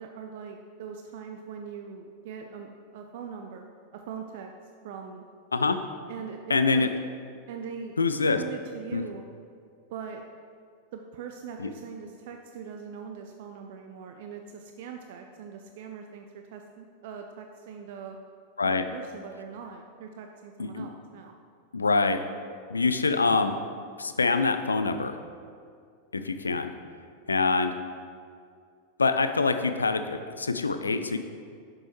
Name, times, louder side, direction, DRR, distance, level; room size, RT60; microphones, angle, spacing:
voice 1, 0.0-3.7 3.9-4.5 4.8-5.3 6.1-6.9 7.5-7.9 8.3-9.3 9.9-10.2 10.9-18.2 18.6-21.4, right 6 dB, 50° right, 4 dB, 0.4 m, -41 dB
voice 2, 6.5-6.9 8.0-8.4 8.9-9.0 11.6-11.7 18.6-18.8 20.6-20.9 21.7-22.2 22.7-23.6 24.0-25.2 26.1-26.7 27.3-27.7 29.0-31.2, left 4 dB, 75° left, 9 dB, 0.4 m, -25 dB
7.5 x 6.1 x 3.0 m, 2.2 s
figure-of-eight pair, 90°, 0 cm